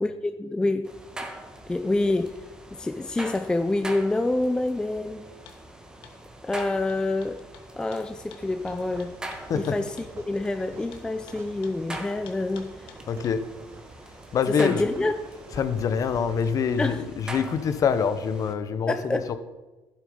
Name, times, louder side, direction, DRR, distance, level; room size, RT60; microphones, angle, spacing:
voice 1, 0.0-0.9 1.7-2.4 2.7-5.3 6.4-7.4 7.8-9.2 9.5-9.9 10.3-12.9 14.6-15.2 16.8-17.0 18.9-19.4, left 2 dB, 10° left, 8 dB, 0.4 m, -27 dB
sound 1, 0.8-18.5, right 1 dB, 10° right, 1.2 m, -43 dB
sound 2, 5.5-5.6 6.0-6.2 6.6-10.1 10.9-13.4, left 9 dB, 85° left, 1.4 m, -50 dB
sound 3, 8.4-17.0, right 4 dB, 30° right, 1.0 m, -49 dB
voice 2, 9.5-9.8 13.1-13.4 14.3-14.9 15.5-19.4, left 6 dB, 40° left, 11 dB, 0.9 m, -25 dB
12.0 x 7.5 x 5.1 m, 1.2 s
cardioid pair, 130°, 9 cm